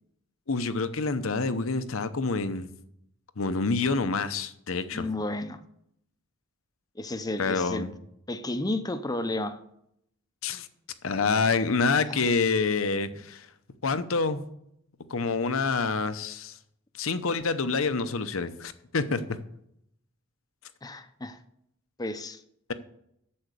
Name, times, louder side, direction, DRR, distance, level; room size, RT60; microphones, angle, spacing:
voice 1, 0.5-2.7 3.4-5.1 7.4-7.9 10.4-10.7 11.0-13.5 13.8-14.4 15.1-16.6 17.0-19.2, left 4 dB, 70° left, 11 dB, 0.8 m, -27 dB
voice 2, 4.9-5.6 7.0-7.9 8.3-9.6 12.1-12.3 20.8-21.4 22.0-22.4, left 1 dB, 20° left, 10 dB, 0.7 m, -32 dB
8.7 x 7.2 x 6.7 m, 0.75 s
head